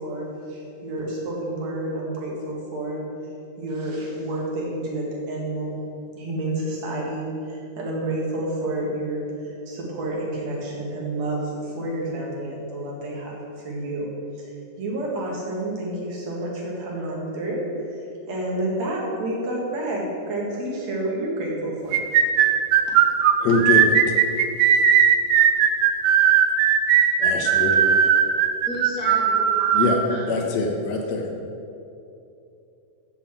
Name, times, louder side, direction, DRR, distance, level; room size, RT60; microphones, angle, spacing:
voice 1, 0.0-3.0 3.6-5.8 6.2-22.0, right 1 dB, 55° right, -3 dB, 2.7 m, -29 dB
sound 1, 21.9-30.0, right 9 dB, 80° right, 2.2 m, -17 dB
voice 2, 23.4-24.0 27.2-27.8 29.7-31.3, left 3 dB, 65° left, 2 dB, 2.0 m, -23 dB
voice 3, 28.7-29.7 30.1-30.3, equal, 90° left, -6 dB, 0.7 m, -32 dB
7.8 x 7.3 x 7.2 m, 2.7 s
omnidirectional pair, 4.1 m